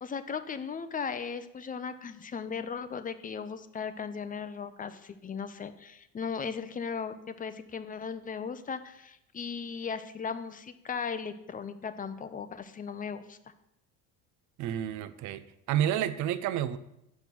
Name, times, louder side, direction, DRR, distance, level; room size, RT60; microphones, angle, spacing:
voice 1, 0.0-13.4, left 6 dB, 25° left, 11 dB, 0.6 m, -37 dB
voice 2, 14.6-15.4 15.7-16.8, right 11 dB, 65° right, 13 dB, 0.6 m, -29 dB
6.3 x 5.3 x 6.0 m, 0.83 s
supercardioid pair, 100°, 32 cm